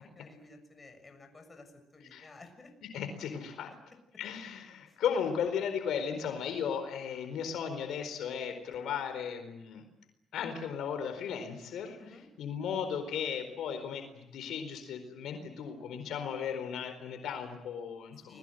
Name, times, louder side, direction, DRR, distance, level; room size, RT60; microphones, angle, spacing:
voice 1, 0.0-2.7 4.9-5.0 12.0-12.3 18.3-18.4, left 3 dB, 30° left, 6 dB, 6.8 m, -54 dB
voice 2, 2.9-3.7 4.2-9.8 10.3-12.0 12.4-18.4, left 7 dB, 80° left, 7 dB, 4.3 m, -36 dB
28.5 x 21.5 x 8.0 m, 0.87 s
cardioid pair, 90°, 0 cm